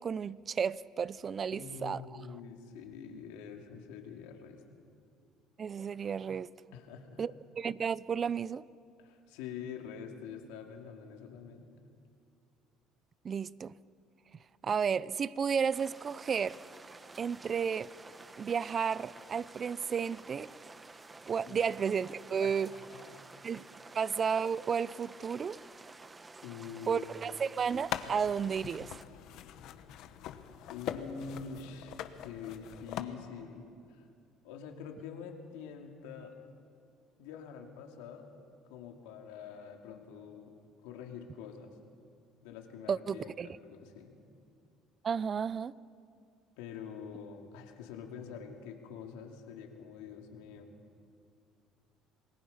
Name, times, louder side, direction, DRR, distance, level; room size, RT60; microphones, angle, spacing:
voice 1, 0.0-2.0 5.6-6.5 7.2-8.6 13.2-13.7 14.6-16.6 17.2-17.9 18.4-20.5 21.3-22.7 23.4-23.7 23.9-25.6 26.9-28.9 42.9-43.5 45.0-45.7, right 6 dB, 40° right, 0.5 m, -32 dB
voice 2, 1.5-4.6 6.7-7.2 9.0-11.7 21.5-21.6 22.4-23.2 26.4-27.4 30.7-31.9 32.2-34.0 34.4-36.3 37.2-38.3 38.7-40.6 40.8-41.7 42.4-44.1 46.6-50.7, left 6 dB, 90° left, 2.5 m, -46 dB
sound 1, 15.7-29.0, right 3 dB, 20° right, 0.9 m, -51 dB
sound 2, 27.7-33.0, left 10 dB, 70° left, 1.2 m, -42 dB
27.5 x 20.5 x 5.6 m
supercardioid pair, 95°, 0 cm